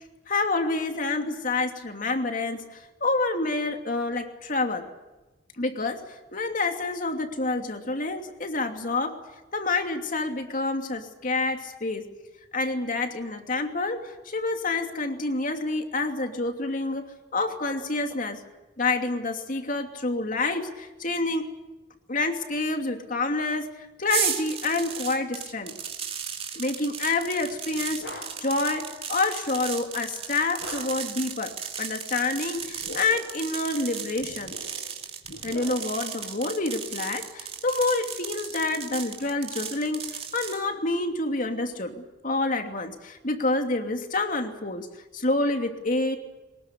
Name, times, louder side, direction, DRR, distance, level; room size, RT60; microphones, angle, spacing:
voice 1, 0.3-2.7 3.0-4.9 5.6-6.0 6.3-9.2 9.5-12.1 12.5-17.1 17.3-18.4 18.8-21.5 22.1-23.7 24.0-25.7 26.5-34.5 35.4-44.9 45.1-46.2, left 3 dB, 50° left, 5 dB, 2.8 m, -28 dB
sound 1, 24.1-40.6, right 7 dB, 35° right, 2.5 m, -35 dB
sound 2, 27.4-28.6 30.6-31.2 32.6-33.4 34.2-36.1, left 1 dB, 75° left, 6.3 m, -42 dB
23.0 x 21.0 x 8.5 m, 1.1 s
head